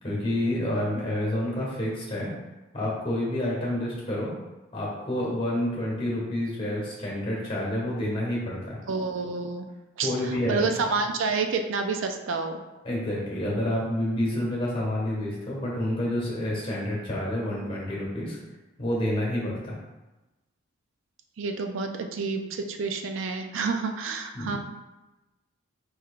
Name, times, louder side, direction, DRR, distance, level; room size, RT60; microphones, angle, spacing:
voice 1, 0.0-2.3 2.7-4.3 4.7-8.8 10.0-10.7 12.8-18.4 18.8-19.7 24.3-24.6, left 1 dB, 30° left, -4 dB, 1.5 m, -28 dB
voice 2, 8.9-9.7 10.0-12.6 21.4-24.6, right 4 dB, 75° right, 5 dB, 0.4 m, -29 dB
4.7 x 4.6 x 2.4 m, 1.1 s
head